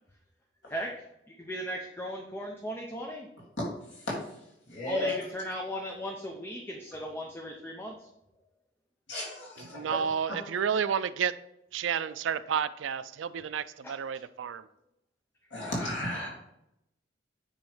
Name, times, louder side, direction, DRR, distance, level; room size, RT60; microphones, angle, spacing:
voice 1, 0.7-3.3 4.9-8.1 13.8-13.9, equal, 10° left, 0 dB, 0.7 m, -37 dB
voice 2, 4.7-5.1 9.1-10.0 10.3-10.4 15.5-16.3, left 1 dB, 70° left, -2 dB, 2.8 m, -33 dB
voice 3, 9.6-11.3 11.7-14.7, right 7 dB, 75° right, 14 dB, 0.4 m, -31 dB
9.0 x 3.1 x 4.9 m, 0.81 s
head